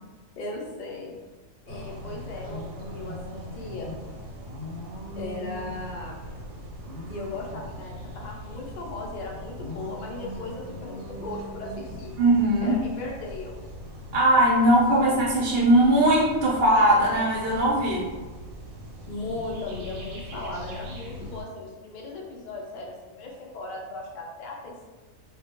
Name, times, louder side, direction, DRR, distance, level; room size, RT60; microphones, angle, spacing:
voice 1, 0.4-1.1 1.6-2.6 2.9-3.9 5.2-6.2 7.1-12.1 12.6-13.6 19.1-24.8, left 2 dB, 85° left, -1 dB, 0.4 m, -37 dB
sound 1, 1.7-21.4, equal, 90° right, 1.0 m, -40 dB
voice 2, 12.2-12.8 14.1-18.0, right 1 dB, 55° right, -5 dB, 0.7 m, -20 dB
2.3 x 2.1 x 2.8 m, 1.3 s
omnidirectional pair, 1.4 m